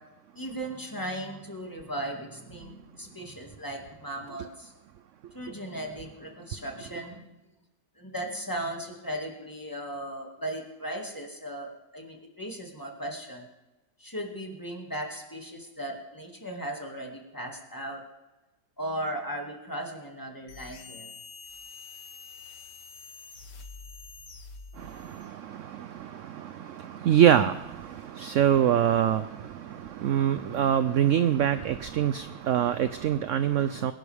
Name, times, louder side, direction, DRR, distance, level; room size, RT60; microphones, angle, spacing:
voice 1, 0.4-4.7 5.3-7.4 8.0-13.5 14.0-18.0 18.8-21.1, right 1 dB, 10° left, 1 dB, 2.0 m, -37 dB
sound 1, 20.5-25.4, left 4 dB, 90° left, 1.8 m, -46 dB
voice 2, 24.8-33.9, right 10 dB, 70° right, 12 dB, 0.7 m, -25 dB
24.0 x 11.0 x 3.5 m, 1.1 s
omnidirectional pair, 1.8 m